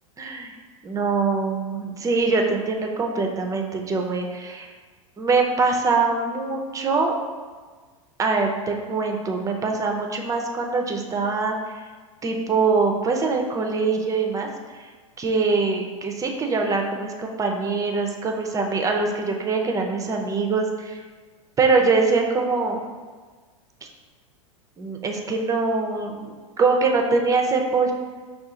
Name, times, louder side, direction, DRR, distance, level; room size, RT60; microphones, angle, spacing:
voice 1, 0.2-0.5 0.8-4.7 5.2-7.1 8.2-11.5 12.2-14.5 14.7-14.8 15.2-21.0 21.6-22.8 24.8-27.9, right 4 dB, 20° right, 2 dB, 0.6 m, -23 dB
5.4 x 2.4 x 3.7 m, 1.4 s
hypercardioid pair, 95°, 18 cm